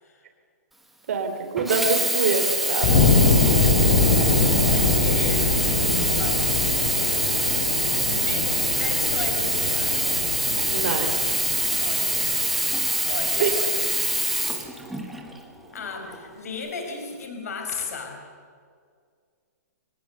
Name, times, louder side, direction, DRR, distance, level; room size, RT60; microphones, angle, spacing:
voice 1, 1.1-3.1 10.7-11.4 13.4-13.5, right 5 dB, 50° right, 6 dB, 3.4 m, -25 dB
Sink (filling or washing), 1.6-15.3 16.1-16.2, right 1 dB, ahead, 1.1 m, -25 dB
sound 1, 2.8-13.6, left 3 dB, 40° left, 5.1 m, -24 dB
voice 2, 4.6-5.5 5.9-6.5 8.1-10.0 11.7-12.3 13.0-14.6 15.7-18.2, left 4 dB, 60° left, 4 dB, 4.8 m, -35 dB
24.0 x 19.5 x 6.8 m, 2.1 s
hypercardioid pair, 175°, 9 cm